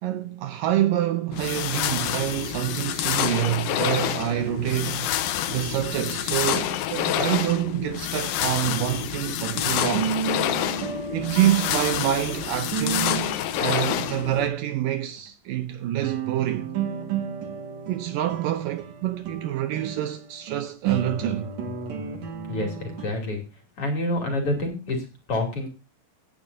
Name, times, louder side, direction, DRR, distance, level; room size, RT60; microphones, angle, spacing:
voice 1, 0.0-10.2 11.1-13.3 13.6-16.7 17.9-21.5, right 12 dB, 75° right, 2.2 m, -27 dB
sound 1, 1.3-14.5, left 11 dB, 75° left, 2.5 m, -28 dB
sound 2, 9.3-14.5 15.2-15.3 16.0-23.1, right 7 dB, 55° right, 2.7 m, -33 dB
voice 2, 22.2-23.4 23.8-25.7, left 1 dB, 40° left, 3.5 m, -28 dB
17.5 x 9.9 x 2.7 m
omnidirectional pair, 4.3 m